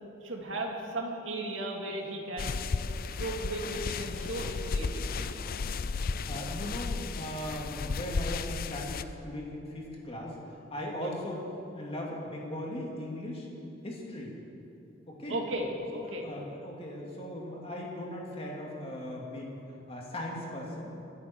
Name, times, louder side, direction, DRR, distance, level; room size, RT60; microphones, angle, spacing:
voice 1, 0.2-2.5 2.8-2.9 3.2-5.3 11.0-11.1 15.3-16.3, right 1 dB, 70° right, 0 dB, 2.2 m, -36 dB
sound 1, 2.4-9.0, left 4 dB, 50° left, 0.4 m, -34 dB
voice 2, 6.3-10.4 10.7-11.5 11.7-13.5 13.8-14.4 15.1-15.4 16.0-19.6 19.9-20.9, left 1 dB, 30° left, -2 dB, 2.6 m, -38 dB
23.5 x 9.8 x 4.6 m, 2.8 s
head